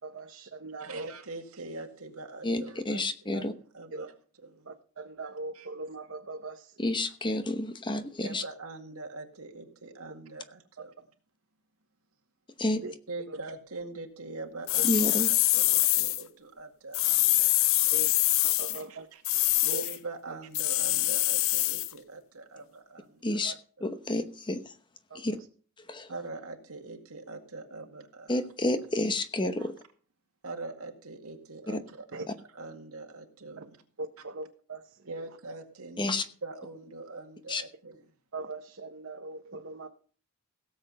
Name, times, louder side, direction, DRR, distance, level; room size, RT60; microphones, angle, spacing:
voice 1, 0.0-1.1 3.9-4.1 4.6-6.9 12.6-12.9 13.3-13.4 14.8-14.9 17.9-18.1 18.4-19.1 19.7-19.9 22.6-22.7 23.4-23.6 25.1-25.5 32.1-32.2 33.6-33.7 34.0-35.1 38.3-39.9, right 2 dB, 60° right, 0.9 m, -41 dB
voice 2, 0.8-3.4 3.7-4.1 4.4-4.7 5.5-5.7 8.2-10.9 13.1-18.0 18.9-19.2 19.6-23.4 23.8-23.9 26.1-28.4 29.6-29.7 30.4-32.3 32.5-33.7 35.1-38.0, right 3 dB, 90° right, 2.1 m, -43 dB
voice 3, 2.4-3.5 6.8-8.4 12.6-12.8 14.8-15.3 23.2-23.5 23.8-24.7 25.1-25.4 25.9-26.1 28.3-29.7 31.7-31.8 36.0-36.2 37.5-37.6, left 1 dB, 20° left, 0.9 m, -30 dB
sound 1, 14.7-16.2 16.9-18.8 19.2-20.0 20.5-21.9, left 17 dB, 65° left, 0.5 m, -25 dB
17.0 x 7.6 x 5.4 m
head